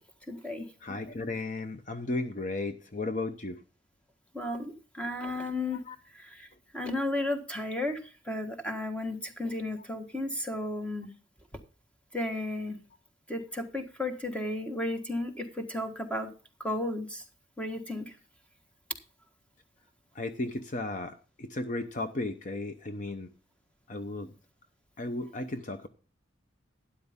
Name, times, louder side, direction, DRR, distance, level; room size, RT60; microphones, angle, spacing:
voice 1, 0.3-0.6 4.3-5.8 6.2-6.5 6.7-8.0 8.3-11.1 12.1-12.8 13.3-16.3 16.6-17.2 17.6-18.1, left 1 dB, 5° left, 5 dB, 1.5 m, -33 dB
voice 2, 0.8-3.6 5.7-6.0 20.1-23.3 23.9-24.3 25.0-25.9, left 2 dB, 40° left, 9 dB, 0.8 m, -35 dB
12.5 x 9.9 x 3.6 m, 0.35 s
head